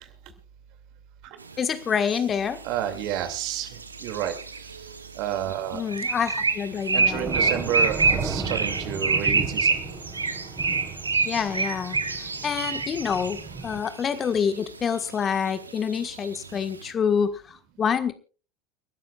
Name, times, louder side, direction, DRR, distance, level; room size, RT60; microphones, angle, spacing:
sound 1, 1.4-16.9, right 4 dB, 85° right, 1.1 m, -28 dB
voice 1, 1.6-2.6 5.7-7.3 11.2-18.1, left 7 dB, 30° left, 10 dB, 1.5 m, -27 dB
voice 2, 2.6-3.7 4.0-4.3 5.2-5.8 6.9-9.8, right 10 dB, 55° right, 8 dB, 2.6 m, -30 dB
Thunder / Rain, 5.6-13.8, right 4 dB, 25° right, 5.1 m, -36 dB
29.5 x 13.0 x 2.4 m, 0.36 s
figure-of-eight pair, 75°, 0 cm